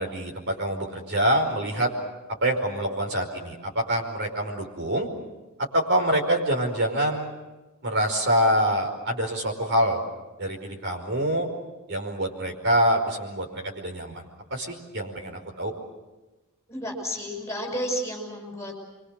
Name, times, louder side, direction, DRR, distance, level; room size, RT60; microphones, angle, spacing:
voice 1, 0.0-1.9 2.4-5.1 5.7-7.3 7.8-10.0 10.4-11.5 11.9-14.2 14.5-15.7, equal, 55° right, 3 dB, 5.1 m, -25 dB
voice 2, 16.7-18.8, equal, 15° left, 1 dB, 6.1 m, -31 dB
29.0 x 24.0 x 6.7 m, 1.1 s
head